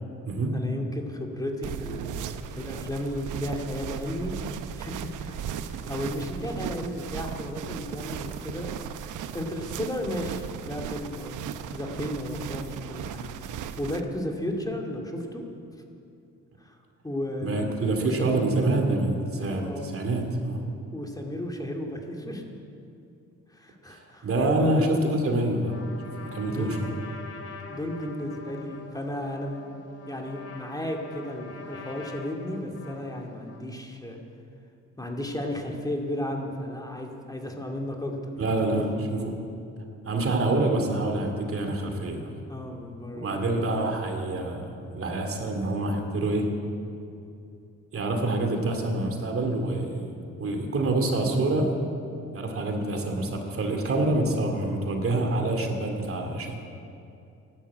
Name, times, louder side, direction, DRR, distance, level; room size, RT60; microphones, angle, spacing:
voice 1, 0.5-2.2 2.6-4.4 4.8-8.7 9.3-15.4 16.6-16.8 17.0-18.4 19.6-19.9 20.9-22.4 23.5-25.0 26.4-27.0 27.7-29.8 30.1-34.2 35.0-39.0 42.5-43.4, left 1 dB, 10° left, 1 dB, 2.3 m, -34 dB
sound 1, 1.6-14.0, right 8 dB, 80° right, 0.9 m, -36 dB
voice 2, 17.4-20.6 23.9-25.8 26.0-26.9 38.4-39.2 40.0-42.2 43.1-46.5 47.9-51.7 52.3-56.6, right 2 dB, 45° right, 4 dB, 2.6 m, -26 dB
Trumpet, 25.6-33.7, left 4 dB, 55° left, 2.3 m, -44 dB
14.5 x 11.5 x 8.5 m, 2.6 s
cardioid pair, 90°, 30 cm